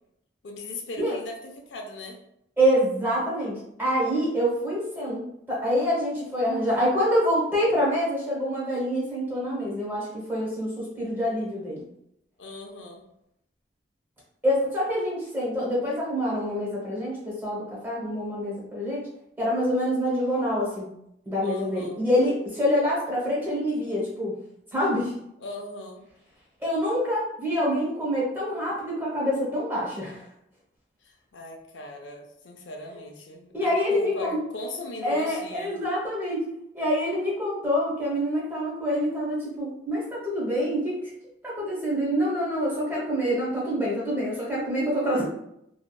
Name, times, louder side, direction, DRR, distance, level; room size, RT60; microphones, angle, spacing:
voice 1, 0.4-2.2 12.4-13.1 21.4-22.1 25.4-26.0 31.0-35.8, left 1 dB, 70° left, 2 dB, 0.5 m, -39 dB
voice 2, 2.6-11.8 14.4-19.1 19.4-20.9 21.3-24.3 24.7-25.1 26.6-30.2 33.5-34.4 35.0-36.5 36.7-41.1 41.4-45.2, equal, 10° right, -6 dB, 0.8 m, -26 dB
2.7 x 2.3 x 2.3 m, 0.77 s
head